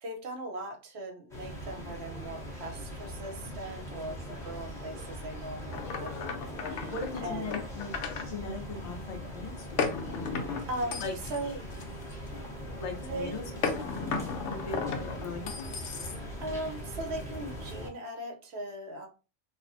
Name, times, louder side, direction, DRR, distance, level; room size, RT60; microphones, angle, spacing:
voice 1, 0.0-6.9 7.2-7.5 10.7-11.0 11.3-11.6 13.0-13.4 16.4-19.1, right 1 dB, 65° right, 4 dB, 0.9 m, -39 dB
sound 1, 1.3-17.9, equal, 5° left, 0.7 m, -41 dB
sound 2, 5.7-8.3 9.8-12.4 13.6-16.5, left 5 dB, 75° left, 0.9 m, -35 dB
voice 2, 6.9-7.9 8.3-9.9 11.0-11.1 12.8-13.4 13.7-13.8 14.5-14.8 15.1-15.7, left 3 dB, 40° left, 2 dB, 0.6 m, -39 dB
3.3 x 2.1 x 2.6 m, 0.32 s
omnidirectional pair, 1.3 m